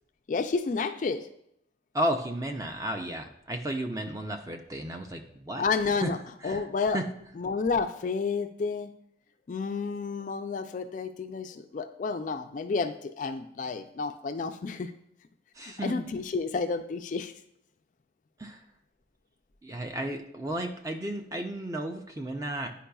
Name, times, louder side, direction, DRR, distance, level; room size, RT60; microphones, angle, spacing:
voice 1, 0.3-1.3 5.6-6.2 6.4-7.0 7.4-8.9 9.5-14.9 15.6-17.3, left 4 dB, 45° left, 8 dB, 0.3 m, -30 dB
voice 2, 1.9-5.6 6.0-6.1 6.4-7.0 15.5-16.0 18.4-18.6 19.6-22.7, right 1 dB, 20° right, 5 dB, 0.5 m, -33 dB
9.9 x 4.7 x 2.3 m, 0.75 s
head